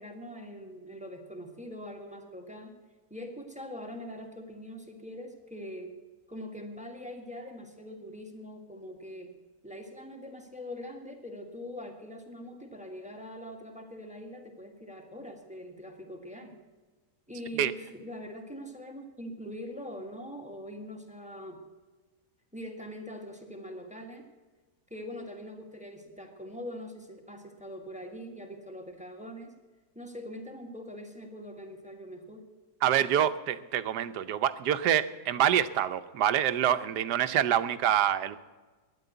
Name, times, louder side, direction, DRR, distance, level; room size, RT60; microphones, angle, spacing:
voice 1, 0.0-2.8 3.1-5.9 6.3-9.3 9.6-16.5 17.3-21.6 22.5-24.2 24.9-29.5 29.9-32.5, left 1 dB, 5° right, 3 dB, 1.5 m, -43 dB
voice 2, 32.8-38.4, right 10 dB, 90° right, 12 dB, 1.3 m, -26 dB
12.0 x 9.9 x 8.0 m, 1.3 s
omnidirectional pair, 1.7 m